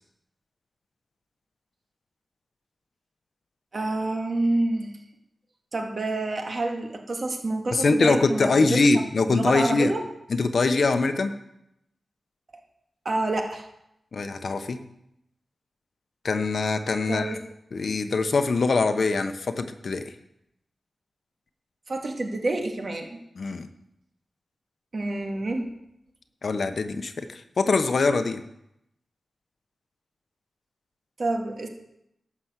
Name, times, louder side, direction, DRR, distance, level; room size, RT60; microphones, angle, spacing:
voice 1, 3.7-5.0 5.7-10.0 13.1-13.6 17.1-17.4 21.9-23.1 24.9-25.7 31.2-31.7, right 2 dB, 55° right, 3 dB, 2.0 m, -28 dB
voice 2, 7.7-9.9 10.3-11.3 14.1-14.8 16.2-17.4 17.7-20.1 23.4-23.7 26.4-28.4, left 3 dB, 65° left, 9 dB, 0.9 m, -23 dB
11.5 x 6.0 x 8.1 m, 0.82 s
wide cardioid pair, 75°, 0 cm